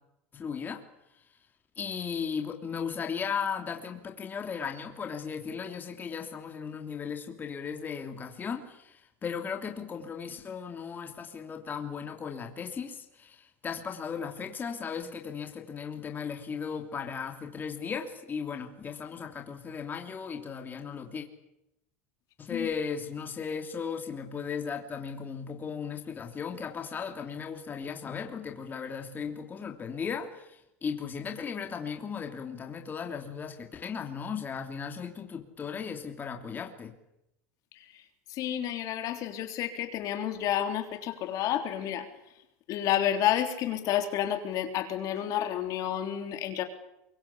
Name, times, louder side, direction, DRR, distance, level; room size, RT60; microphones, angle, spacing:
voice 1, 0.3-0.8 1.8-21.3 22.4-36.9, left 6 dB, 25° left, 4 dB, 3.0 m, -36 dB
voice 2, 38.3-42.1 42.7-46.6, left 11 dB, 50° left, 7 dB, 3.5 m, -30 dB
24.0 x 23.0 x 8.4 m, 0.84 s
supercardioid pair, 115°, 7 cm